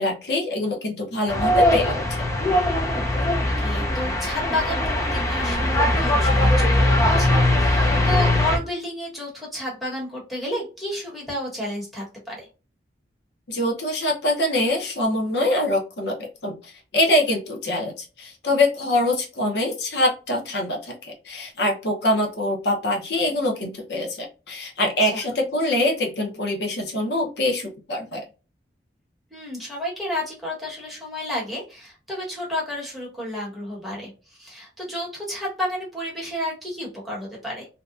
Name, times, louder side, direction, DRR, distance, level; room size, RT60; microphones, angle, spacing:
voice 1, 0.0-2.3 13.5-28.2, left 1 dB, 70° left, 1 dB, 0.8 m, -24 dB
sound 1, 1.3-8.6, left 1 dB, 15° left, 0.4 m, -20 dB
voice 2, 3.6-12.5 25.0-25.2 29.3-34.1 34.4-37.7, left 1 dB, ahead, -5 dB, 1.1 m, -31 dB
2.8 x 2.2 x 2.4 m, 0.33 s
head